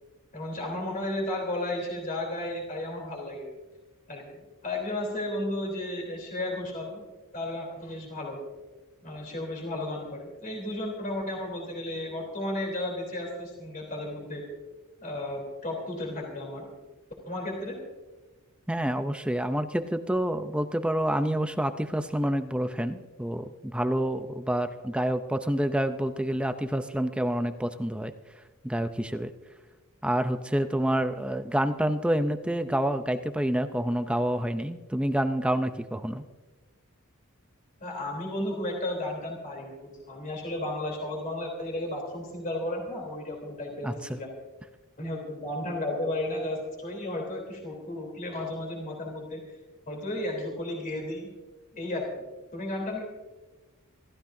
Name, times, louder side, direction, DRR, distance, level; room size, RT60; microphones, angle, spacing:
voice 1, 0.3-3.5 4.1-4.2 4.6-7.0 7.3-8.4 9.0-14.4 15.0-16.7 17.3-17.8 37.8-44.3 45.0-49.4 49.9-51.3 51.7-52.1 52.5-53.0, left 1 dB, 40° left, 0 dB, 3.5 m, -33 dB
voice 2, 18.7-28.1 28.6-29.3 30.0-36.2 43.8-44.2, right 1 dB, 5° right, 8 dB, 0.5 m, -28 dB
26.5 x 14.5 x 2.7 m, 1.2 s
head